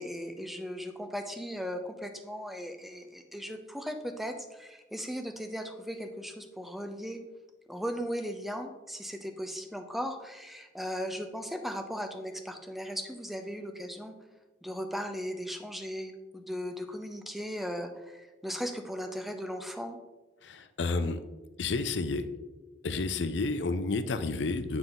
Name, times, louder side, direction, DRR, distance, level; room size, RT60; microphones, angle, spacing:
voice 1, 0.0-7.2 7.7-14.1 14.6-20.0, equal, ahead, 6 dB, 0.5 m, -37 dB
voice 2, 20.4-21.2 21.6-22.3 22.8-24.8, left 3 dB, 80° left, 11 dB, 0.5 m, -30 dB
9.0 x 3.7 x 3.8 m, 1.2 s
head